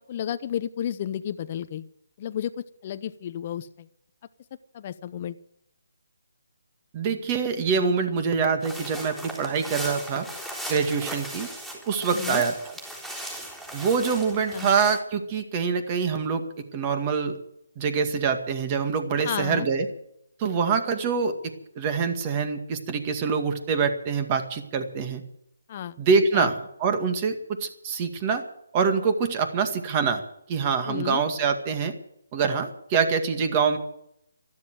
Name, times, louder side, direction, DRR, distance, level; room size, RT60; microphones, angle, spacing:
voice 1, 0.1-1.9 2.2-3.9 4.7-5.3 12.1-12.4 14.5-14.7 19.2-19.7 25.7-26.0 26.3-26.5 30.9-31.2, left 10 dB, 35° left, 11 dB, 0.7 m, -32 dB
voice 2, 6.9-10.3 10.7-11.5 11.9-12.6 13.7-16.5 16.7-17.4 17.8-19.9 20.4-21.3 21.8-25.2 26.0-28.4 28.7-30.2 30.5-31.9 32.3-33.8, right 5 dB, 25° right, 7 dB, 2.0 m, -25 dB
sound 1, 8.6-15.0, right 1 dB, 5° right, 3.8 m, -37 dB
13.0 x 13.0 x 7.8 m, 0.78 s
figure-of-eight pair, 155°, 0 cm